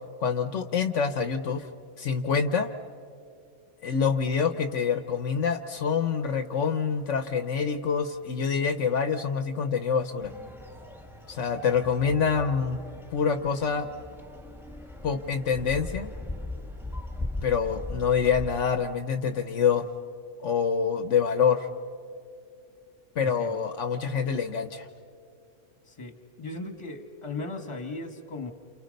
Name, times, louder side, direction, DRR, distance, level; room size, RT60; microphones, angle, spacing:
voice 1, 0.2-1.7 2.0-2.7 3.8-10.3 11.3-12.8 13.1-13.9 15.0-16.1 17.4-19.9 20.4-21.7 23.2-24.9, left 6 dB, 70° left, 9 dB, 1.2 m, -26 dB
sound 1, 10.2-18.6, left 2 dB, ahead, 1.5 m, -39 dB
voice 2, 23.2-23.6 25.9-28.5, left 2 dB, 25° left, 6 dB, 1.5 m, -37 dB
29.0 x 29.0 x 5.3 m, 2.4 s
omnidirectional pair, 1.3 m